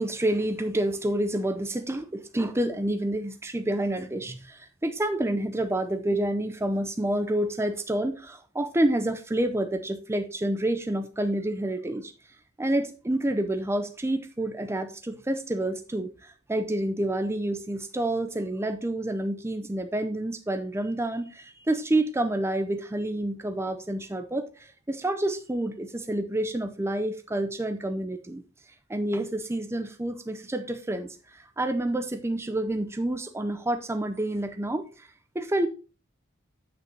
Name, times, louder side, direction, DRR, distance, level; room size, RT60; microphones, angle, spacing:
voice 1, 0.0-12.1 12.6-28.4 28.9-35.1 35.3-35.7, right 1 dB, 10° right, 0.6 m, -28 dB
7.9 x 6.6 x 3.4 m
head